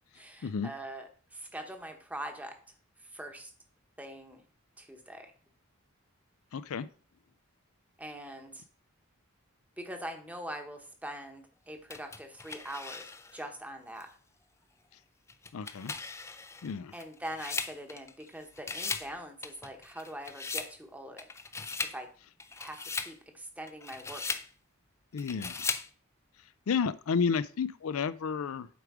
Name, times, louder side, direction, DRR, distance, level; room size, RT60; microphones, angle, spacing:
voice 1, 0.1-2.6 3.1-3.5 4.0-4.4 4.8-5.3 8.0-8.6 9.8-14.1 16.9-21.3 21.9-22.1 22.6-24.2, right 1 dB, 5° right, 5 dB, 1.0 m, -43 dB
voice 2, 6.5-6.9 15.5-15.9 16.6-16.9 25.1-25.7 26.7-28.7, left 6 dB, 80° left, 15 dB, 0.4 m, -31 dB
sound 1, 11.9-13.4 14.0-14.1 15.3-18.3 18.6-19.1 19.4-20.7 21.2-22.0 22.4-23.1 23.7-24.5 25.2-25.9, left 4 dB, 15° left, 0.4 m, -38 dB
8.0 x 5.1 x 4.8 m, 0.42 s
head